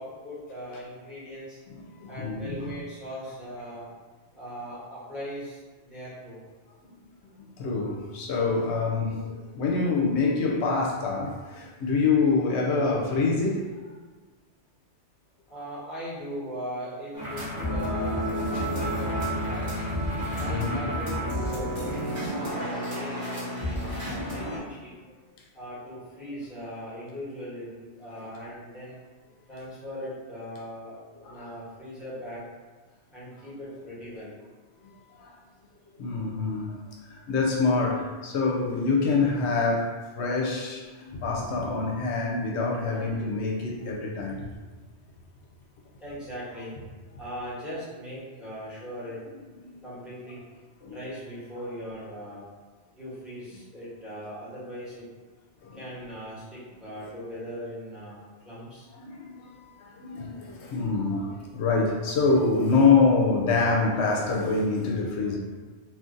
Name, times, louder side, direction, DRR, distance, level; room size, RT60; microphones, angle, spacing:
voice 1, 0.0-1.6 2.1-3.9 4.3-6.4 15.5-19.9 20.4-24.9 25.5-29.0 29.5-32.4 33.1-34.3 46.0-46.8 47.2-49.2 49.8-50.4 50.8-52.4 52.9-55.1 55.7-58.9, equal, ahead, -10 dB, 1.1 m, -39 dB
voice 2, 2.0-2.6 7.6-13.7 20.2-20.8 28.2-28.3 31.2-31.5 35.2-35.3 36.0-36.8 37.0-44.5 49.6-49.8 50.8-51.0 55.6-55.8 59.0-65.4, left 4 dB, 80° left, -1 dB, 0.9 m, -26 dB
sound 1, 17.1-24.6, equal, 20° right, 0.8 m, -30 dB
2.6 x 2.4 x 3.7 m, 1.3 s
omnidirectional pair, 1.1 m